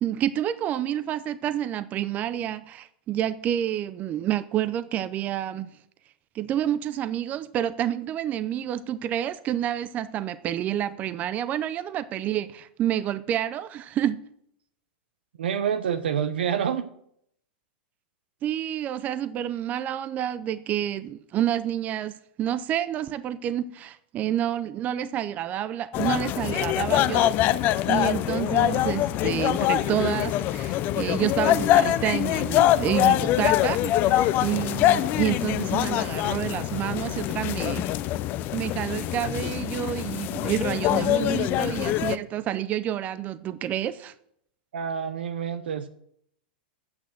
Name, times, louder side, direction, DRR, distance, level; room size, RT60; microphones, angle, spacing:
voice 1, 0.0-5.7 6.3-14.2 18.4-27.3 27.9-38.0 38.5-44.1, right 11 dB, 30° right, 0.5 m, -29 dB
voice 2, 15.4-16.9 44.7-45.9, right 8 dB, 85° right, 0.8 m, -27 dB
sound 1, 25.9-42.2, left 13 dB, 35° left, 0.5 m, -24 dB
8.7 x 6.2 x 7.7 m
hypercardioid pair, 135°, 6 cm